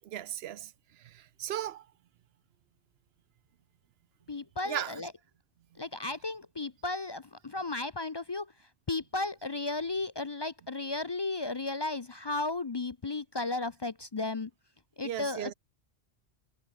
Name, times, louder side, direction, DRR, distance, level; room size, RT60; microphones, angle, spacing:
voice 1, 0.0-0.7 1.0-1.8 4.6-5.0 15.0-15.5, right 11 dB, 70° right, 0.8 m, -36 dB
voice 2, 4.3-5.1 5.8-8.5 8.9-14.5 15.0-15.5, left 3 dB, 35° left, 0.4 m, -34 dB
omnidirectional pair, 1.1 m